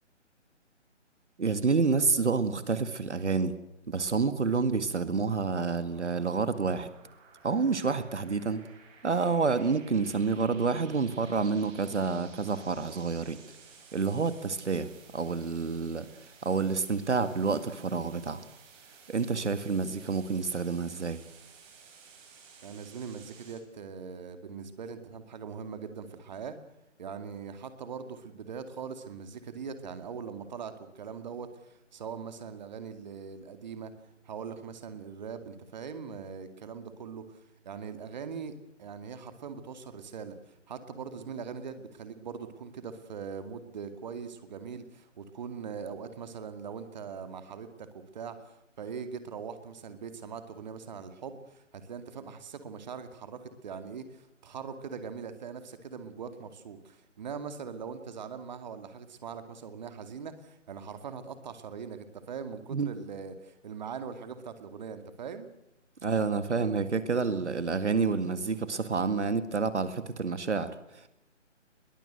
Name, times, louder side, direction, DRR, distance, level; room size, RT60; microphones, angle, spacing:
voice 1, 1.4-3.6 3.9-6.9 7.4-8.6 9.0-13.4 13.9-16.1 16.4-18.5 19.1-21.2 62.7-62.9 66.0-71.1, right 4 dB, 65° right, 12 dB, 2.1 m, -28 dB
sound 1, 5.6-23.6, right 6 dB, 15° right, 4.6 m, -55 dB
voice 2, 22.6-26.6 27.0-33.9 34.2-65.5, right 6 dB, 35° right, 10 dB, 2.2 m, -41 dB
22.0 x 21.0 x 8.0 m, 0.85 s
figure-of-eight pair, 155°, 37 cm